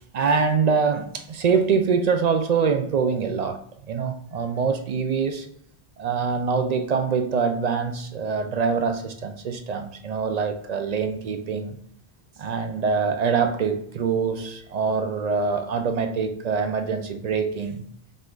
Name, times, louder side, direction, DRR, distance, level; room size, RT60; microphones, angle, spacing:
voice 1, 0.1-3.6 3.9-5.5 6.0-11.8 12.4-17.8, right 5 dB, 55° right, 7 dB, 0.5 m, -24 dB
5.4 x 2.5 x 3.7 m, 0.66 s
omnidirectional pair, 1.0 m